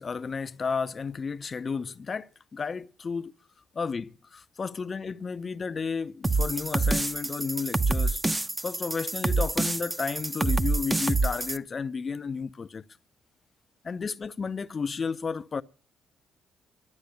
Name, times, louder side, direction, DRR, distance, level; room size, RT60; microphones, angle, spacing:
voice 1, 0.0-3.3 3.7-8.2 8.6-12.8 13.8-15.6, left 5 dB, 40° left, 0.7 m, -32 dB
sound 1, 6.2-11.6, right 2 dB, 15° right, 0.7 m, -27 dB
12.0 x 9.7 x 8.4 m
cardioid pair, 90°, 0 cm